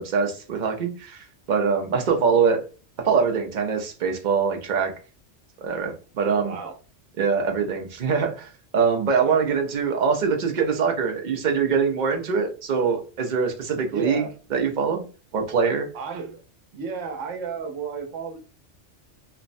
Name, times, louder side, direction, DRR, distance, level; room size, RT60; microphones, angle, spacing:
voice 1, 0.0-2.6 3.0-4.9 5.6-6.5 7.2-15.0 15.3-15.9, right 5 dB, 55° right, 0.5 m, -23 dB
voice 2, 6.2-6.8 9.2-9.5 13.9-14.3 15.9-16.4 16.7-18.4, right 5 dB, 85° right, 1.0 m, -33 dB
3.2 x 2.0 x 2.5 m
omnidirectional pair, 1.3 m